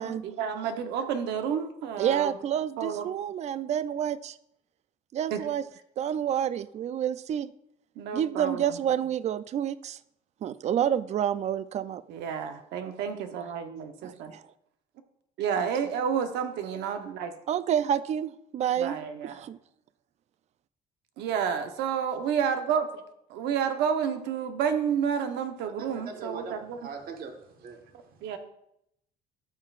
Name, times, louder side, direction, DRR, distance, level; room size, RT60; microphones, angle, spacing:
voice 1, 0.0-2.4 2.8-3.1 5.3-5.4 8.0-8.8 12.1-14.3 15.4-17.3 18.8-19.4 21.2-23.0 23.3-26.8 28.2-28.4, right 7 dB, 85° right, 7 dB, 0.9 m, -30 dB
voice 2, 2.0-4.4 5.1-5.6 6.0-7.5 8.1-10.0 10.4-12.0 14.0-14.4 15.6-15.7 17.5-19.0 19.2-19.6, right 9 dB, 40° right, 16 dB, 0.4 m, -29 dB
voice 3, 25.6-28.4, right 5 dB, 60° right, 3 dB, 1.4 m, -42 dB
12.5 x 5.6 x 2.4 m, 0.77 s
cardioid pair, 110°, 17 cm